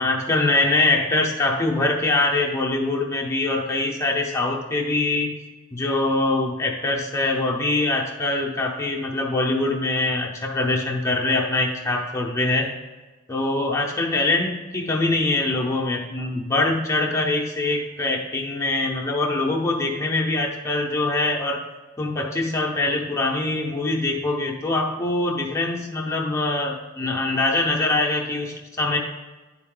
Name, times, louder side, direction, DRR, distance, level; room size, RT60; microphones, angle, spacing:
voice 1, 0.0-5.4 5.7-12.7 13.3-21.6 22.0-29.0, left 2 dB, 15° left, -2 dB, 0.7 m, -23 dB
11.0 x 4.6 x 3.7 m, 1.2 s
head